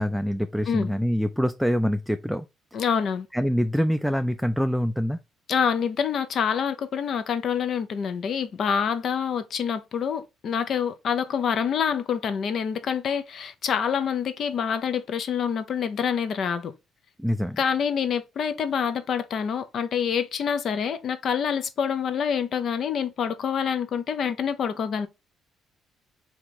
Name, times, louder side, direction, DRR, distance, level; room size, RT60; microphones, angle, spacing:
voice 1, 0.0-2.5 3.3-5.2 17.2-17.6, equal, ahead, 0.4 m, -25 dB
voice 2, 2.7-3.3 5.5-16.7 17.6-25.1, left 7 dB, 60° left, 0.6 m, -26 dB
3.6 x 2.9 x 4.1 m
supercardioid pair, 65°, 0 cm